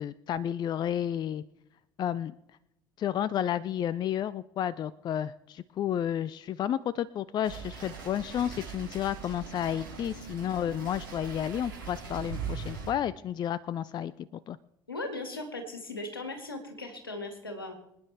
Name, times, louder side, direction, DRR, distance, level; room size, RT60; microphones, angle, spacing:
voice 1, 0.0-1.4 2.0-2.3 3.0-14.1 14.5-14.6, left 10 dB, 40° left, 18 dB, 0.5 m, -31 dB
sound 1, 7.4-12.9, right 6 dB, 85° right, 5.4 m, -41 dB
voice 2, 14.9-17.7, left 2 dB, 85° left, 4 dB, 2.1 m, -38 dB
25.0 x 9.8 x 3.4 m, 0.80 s
figure-of-eight pair, 60°, 12 cm